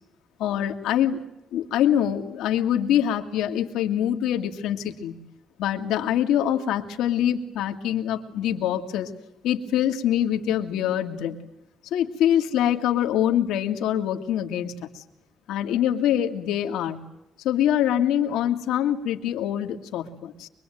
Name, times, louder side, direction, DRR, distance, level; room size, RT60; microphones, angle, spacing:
voice 1, 0.4-1.2 1.5-5.2 5.6-9.1 9.4-11.4 11.9-15.0 15.5-17.0 17.4-20.5, left 10 dB, 90° left, 5 dB, 2.3 m, -24 dB
24.0 x 24.0 x 9.3 m, 0.86 s
cardioid pair, 90°, 0 cm